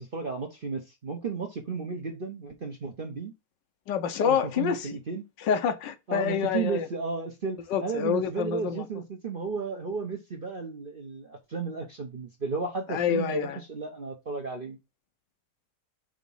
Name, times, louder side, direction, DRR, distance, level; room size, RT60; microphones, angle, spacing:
voice 1, 0.0-3.3 4.2-5.2 6.1-14.8, right 4 dB, 45° right, 0.7 m, -34 dB
voice 2, 3.9-4.9 5.4-6.9 7.7-8.8 12.9-13.6, left 7 dB, 80° left, 1.5 m, -27 dB
5.1 x 3.6 x 5.4 m
omnidirectional pair, 1.9 m